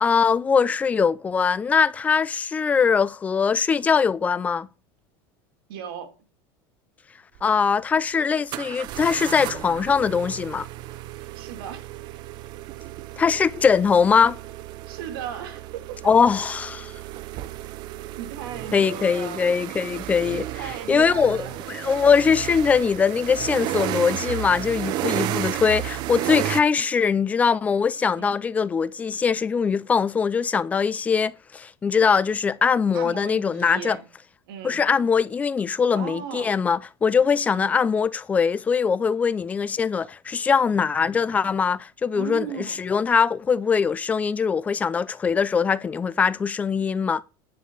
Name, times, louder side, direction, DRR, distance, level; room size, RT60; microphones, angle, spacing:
voice 1, 0.0-4.7 7.4-10.7 13.2-14.4 16.0-16.9 18.7-20.5 20.9-34.0 34.6-47.2, left 6 dB, 10° left, 0.4 m, -22 dB
voice 2, 5.7-6.2 11.3-11.9 14.9-16.1 18.2-19.4 20.6-21.6 28.1-28.4 32.9-34.0 34.5-34.8 35.9-36.5 37.5-37.7 42.1-42.8, right 8 dB, 70° right, 2.8 m, -36 dB
sound 1, 7.3-7.4 8.5-26.6, right 14 dB, 35° right, 0.6 m, -33 dB
10.5 x 6.8 x 5.5 m
supercardioid pair, 170°, 13 cm